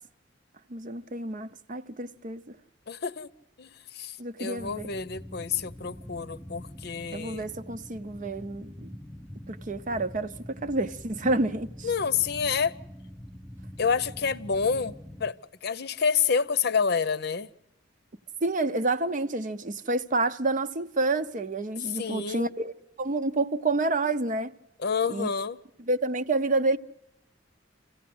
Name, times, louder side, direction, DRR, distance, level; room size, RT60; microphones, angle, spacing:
voice 1, 0.7-2.6 4.2-4.9 7.1-9.0 9.5-11.9 18.4-22.7 23.0-24.5 25.1-25.3 25.9-26.8, right 2 dB, 45° right, 0.7 m, -29 dB
voice 2, 2.9-3.3 3.6-7.5 11.8-12.7 13.8-15.3 15.6-17.5 21.9-22.5 24.8-25.6, left 6 dB, 60° left, 0.7 m, -28 dB
sound 1, 4.6-15.3, equal, 5° left, 0.8 m, -44 dB
27.0 x 16.0 x 7.8 m
head